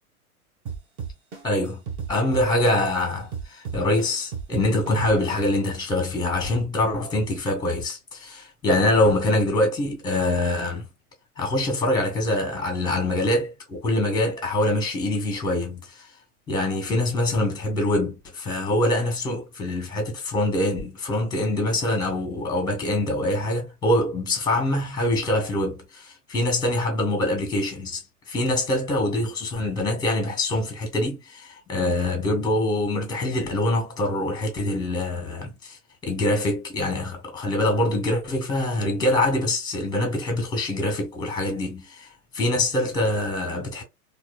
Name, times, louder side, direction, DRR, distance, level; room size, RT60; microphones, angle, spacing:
sound 1, 0.7-3.0 3.3-5.7, right 6 dB, 20° right, 0.9 m, -33 dB
voice 1, 1.4-1.8 2.1-10.8 11.4-16.1 16.5-28.0 28.3-42.1 42.3-43.8, left 1 dB, 10° left, 1.5 m, -24 dB
4.3 x 2.6 x 2.3 m
figure-of-eight pair, 110°, 44 cm